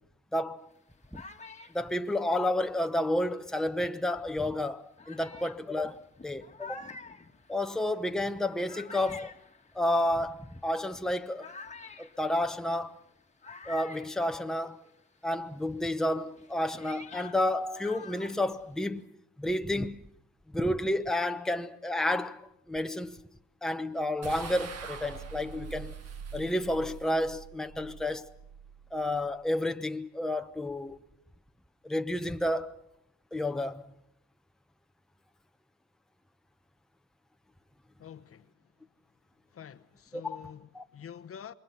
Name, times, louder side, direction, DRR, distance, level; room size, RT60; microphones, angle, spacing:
voice 1, 0.3-0.7 1.1-1.2 1.7-6.9 7.5-9.3 9.7-11.5 12.0-13.0 13.7-14.8 15.2-19.0 19.4-20.0 20.5-22.4 22.7-23.2 23.6-25.9 26.3-28.3 28.9-31.0 31.8-32.7 33.3-33.8 40.1-40.4 40.7-40.8, left 1 dB, ahead, 0.9 m, -31 dB
sound 1, 0.7-3.7 4.4-4.5 5.0-15.0 15.3-19.0, left 4 dB, 25° left, 1.6 m, -49 dB
sound 2, 24.2-29.6, right 6 dB, 55° right, 1.7 m, -44 dB
voice 2, 38.0-38.5 39.5-41.5, left 8 dB, 50° left, 1.0 m, -47 dB
27.5 x 22.0 x 5.8 m
cardioid pair, 90°, 30 cm